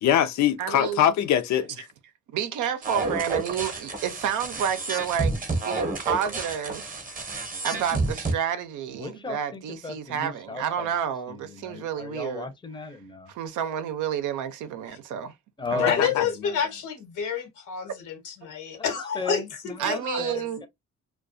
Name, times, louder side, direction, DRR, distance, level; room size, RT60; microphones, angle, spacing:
voice 1, 0.0-1.9 15.8-16.2, left 10 dB, 70° left, 0.5 m, -23 dB
voice 2, 0.6-1.0 2.3-5.4 5.6-6.9 7.6-12.5 13.3-15.3 15.7-15.8 19.8-20.6, right 9 dB, 80° right, 0.6 m, -30 dB
sound 1, 2.8-8.3, right 3 dB, 25° right, 0.8 m, -30 dB
voice 3, 8.9-11.0 11.3-13.3 15.6-16.6 18.7-18.9 19.1-20.7, left 4 dB, 15° left, 0.6 m, -35 dB
voice 4, 15.8-20.2, left 7 dB, 90° left, 1.0 m, -29 dB
2.3 x 2.2 x 2.5 m
cardioid pair, 90°, 30 cm